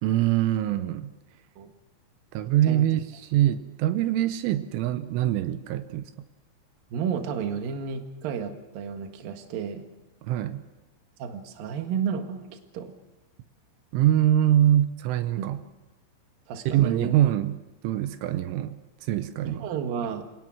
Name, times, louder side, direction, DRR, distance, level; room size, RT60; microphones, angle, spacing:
voice 1, 0.0-1.1 2.3-6.1 10.2-10.6 13.9-15.6 16.7-17.6 17.8-19.7, right 12 dB, 85° right, 11 dB, 3.3 m, -24 dB
voice 2, 6.9-9.8 11.2-12.9 15.4-15.5 16.5-17.2 19.4-20.2, right 7 dB, 60° right, 6 dB, 2.8 m, -32 dB
27.0 x 18.5 x 6.2 m, 1.1 s
omnidirectional pair, 5.6 m